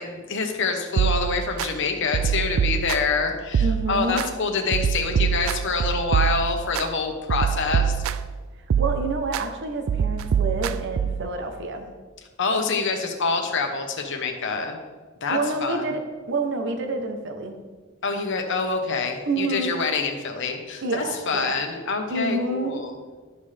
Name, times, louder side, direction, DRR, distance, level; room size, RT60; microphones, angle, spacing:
voice 1, 0.0-8.0 12.4-14.8 15.2-15.8 18.0-22.9, left 4 dB, 60° left, 3 dB, 1.0 m, -26 dB
sound 1, 1.0-1.7 2.1-3.2 3.5-4.3 4.7-6.9 7.3-8.4 8.7-9.5 9.9-11.3, right 7 dB, 80° right, 0.4 m, -24 dB
voice 2, 3.6-4.2 8.8-11.9 15.3-16.0 16.3-17.6 19.3-19.8 20.8-21.5 22.1-22.8, right 2 dB, 60° right, 5 dB, 0.8 m, -28 dB
12.0 x 5.7 x 3.4 m, 1.4 s
head